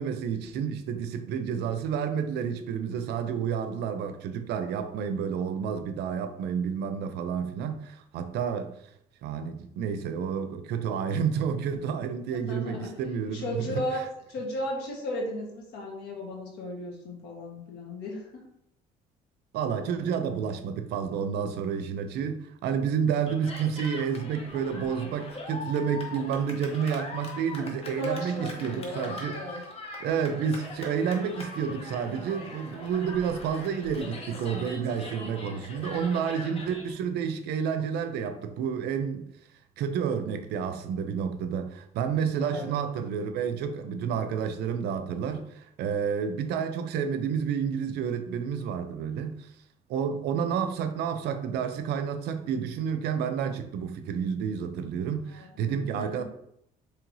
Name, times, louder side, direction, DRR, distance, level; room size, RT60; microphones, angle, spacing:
voice 1, 0.0-8.7 9.2-13.8 19.5-29.4 30.0-39.2 39.8-49.5 49.9-56.2, right 7 dB, 75° right, 0.5 m, -30 dB
voice 2, 12.3-12.9 13.3-14.0 14.3-18.4 27.8-29.6 35.8-36.2 42.4-42.7 55.3-55.5 56.0-56.1, left 1 dB, 90° left, 1.2 m, -35 dB
Cheering, 23.3-36.9, left 2 dB, 35° left, 0.9 m, -42 dB
4.6 x 3.2 x 2.6 m
cardioid pair, 110°, 17 cm